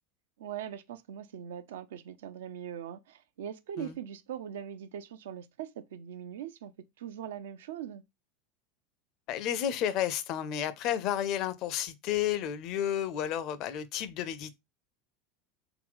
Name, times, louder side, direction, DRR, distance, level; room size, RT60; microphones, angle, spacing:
voice 1, 0.4-6.7 7.0-8.0, right 9 dB, 65° right, 0.4 m, -41 dB
voice 2, 9.3-14.5, left 10 dB, 50° left, 0.5 m, -31 dB
3.8 x 2.2 x 3.6 m
figure-of-eight pair, 75°, 0 cm